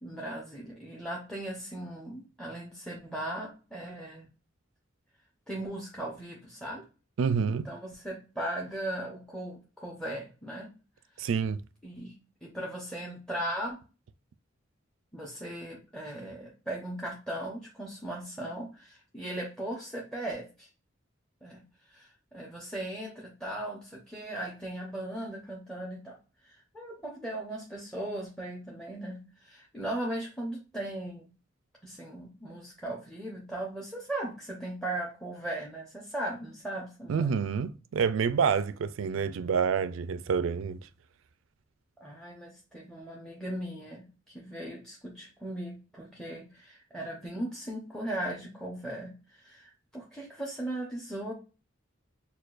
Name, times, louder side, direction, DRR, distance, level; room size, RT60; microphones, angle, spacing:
voice 1, 0.0-4.3 5.5-6.8 7.5-10.7 11.2-11.3 11.8-13.8 15.1-20.7 21.4-21.6 21.9-26.2 26.4-31.3 31.8-37.3 42.0-51.3, right 1 dB, 5° left, 0.7 m, -38 dB
voice 2, 7.2-7.7 11.2-11.6 37.1-40.9, right 6 dB, 75° right, 0.4 m, -28 dB
6.5 x 2.3 x 2.4 m
head